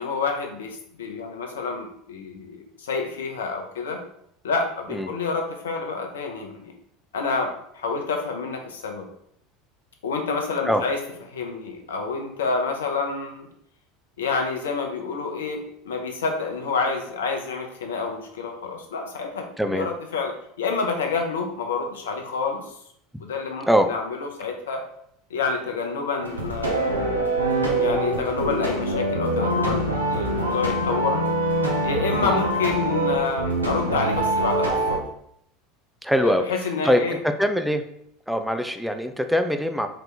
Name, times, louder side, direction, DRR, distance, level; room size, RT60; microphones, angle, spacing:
voice 1, 0.0-4.0 4.4-6.7 7.1-9.1 10.0-11.0 11.3-13.5 14.2-22.7 23.2-24.8 25.3-27.2 27.8-31.2 31.8-35.0 36.2-37.2, left 4 dB, 75° left, 3 dB, 0.6 m, -28 dB
voice 2, 19.6-19.9 23.7-23.9 32.2-32.4 36.0-36.4 36.8-37.8 38.3-39.9, equal, ahead, 7 dB, 0.4 m, -22 dB
sound 1, 26.2-35.0, right 1 dB, 90° right, 0.6 m, -24 dB
3.9 x 2.8 x 3.3 m, 0.71 s
figure-of-eight pair, 75°, 0 cm